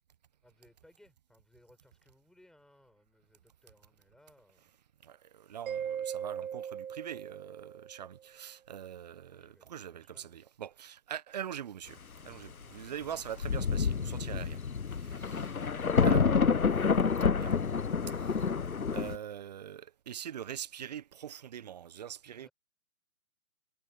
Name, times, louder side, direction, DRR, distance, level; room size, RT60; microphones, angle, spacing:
voice 1, 0.4-4.7 9.3-10.5 22.3-22.5, left 1 dB, ahead, 7.0 m, -64 dB
voice 2, 5.0-14.6 14.9-15.7 16.0-16.5 17.4-17.6 18.1-18.5 18.9-22.5, right 9 dB, 30° right, 1.2 m, -43 dB
Mallet percussion, 5.7-8.2, right 8 dB, 75° right, 0.6 m, -39 dB
Thunder, 13.0-13.1 13.4-19.2, left 5 dB, 80° left, 1.0 m, -28 dB
figure-of-eight pair, 140°, 43 cm